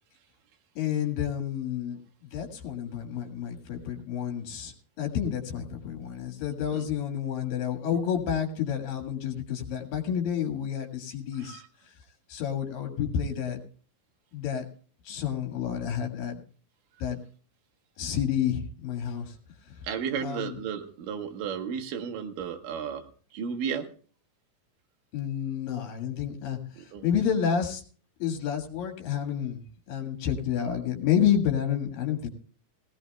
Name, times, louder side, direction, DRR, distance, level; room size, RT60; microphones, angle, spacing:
voice 1, 0.8-11.6 12.3-13.6 14.3-14.6 15.0-16.4 17.0-17.2 18.0-19.3 20.2-20.5 25.1-27.8 28.2-32.3, left 8 dB, 75° left, 4 dB, 3.4 m, -30 dB
voice 2, 19.8-23.1 23.3-23.9 26.8-27.1, right 7 dB, 70° right, 3 dB, 2.7 m, -33 dB
19.0 x 16.5 x 2.2 m, 0.42 s
omnidirectional pair, 4.1 m